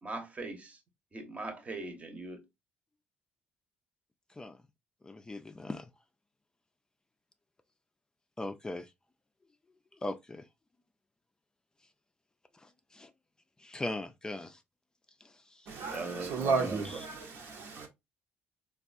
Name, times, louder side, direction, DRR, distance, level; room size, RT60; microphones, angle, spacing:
voice 1, 0.0-0.8 1.1-2.4 15.9-17.0, right 3 dB, 30° right, 0.9 m, -40 dB
voice 2, 5.0-5.9 8.4-8.9 10.0-10.4 12.6-13.1 13.6-14.6 15.2-15.7 16.8-17.0, left 2 dB, 20° left, 0.3 m, -40 dB
voice 3, 15.7-17.9, right 4 dB, 70° right, 0.9 m, -33 dB
3.5 x 2.3 x 2.5 m
supercardioid pair, 80°, 4 cm